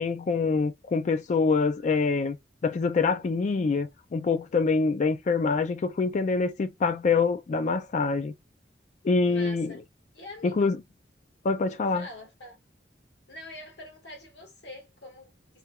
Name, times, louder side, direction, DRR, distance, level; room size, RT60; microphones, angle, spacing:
voice 1, 0.0-2.4 2.6-8.3 9.0-9.8 10.4-10.8 11.4-12.1, left 4 dB, 45° left, 0.3 m, -25 dB
voice 2, 9.2-9.8 10.1-10.7 11.9-12.6 13.3-15.6, left 1 dB, 80° left, 1.5 m, -45 dB
3.3 x 2.2 x 3.4 m
head